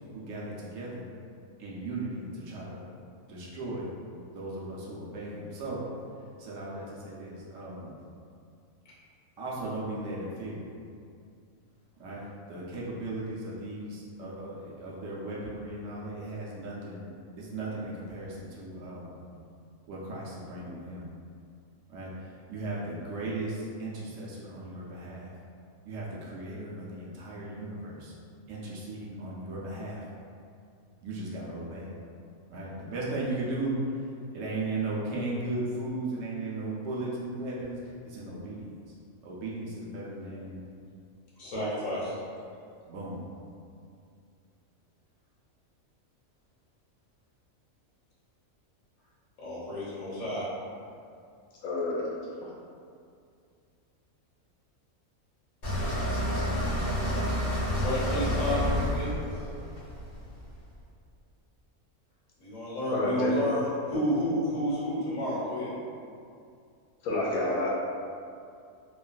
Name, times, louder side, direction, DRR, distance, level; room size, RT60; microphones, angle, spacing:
voice 1, 0.1-1.1 1.6-2.8 3.3-3.9 4.3-5.8 6.4-7.9 9.4-10.6 12.0-12.2 12.5-17.1 17.4-19.2 19.9-21.0 21.9-25.3 25.8-28.1 28.5-30.0 31.0-31.9 32.5-33.7 34.3-38.9 39.2-40.7 42.9-43.2, right 2 dB, 70° right, -5 dB, 0.9 m, -36 dB
voice 2, 41.4-42.2 49.4-50.5 57.8-59.5 62.4-65.7, equal, 70° left, -9 dB, 1.3 m, -31 dB
voice 3, 51.6-52.1 58.5-58.6 62.9-63.3 67.0-67.7, left 2 dB, 90° left, -5 dB, 1.1 m, -29 dB
sound 1, 55.6-60.6, equal, 45° left, 0.5 m, -29 dB
3.0 x 2.4 x 2.2 m, 2.4 s
omnidirectional pair, 1.4 m